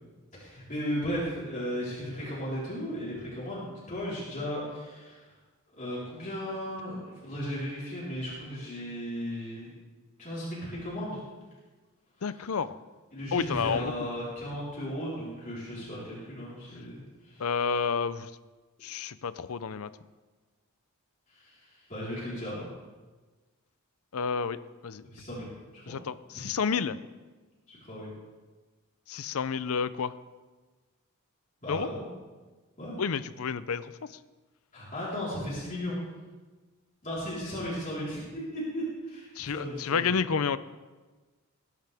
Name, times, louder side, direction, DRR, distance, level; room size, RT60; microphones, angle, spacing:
voice 1, 0.3-5.3 5.8-9.7 10.2-11.2 12.3-12.5 13.1-17.5 21.3-22.7 25.1-25.4 25.7-25.9 27.7-28.1 31.6-32.1 32.8-33.0 34.7-36.0 37.0-40.1, equal, 35° left, -8 dB, 4.2 m, -36 dB
voice 2, 12.2-12.8 13.3-13.9 17.4-18.3 18.8-19.9 24.1-24.6 24.8-25.0 25.9-27.0 29.1-30.1 31.7-31.9 33.0-34.1 39.4-40.6, left 6 dB, 70° left, 15 dB, 0.5 m, -30 dB
20.0 x 10.5 x 3.5 m, 1.3 s
head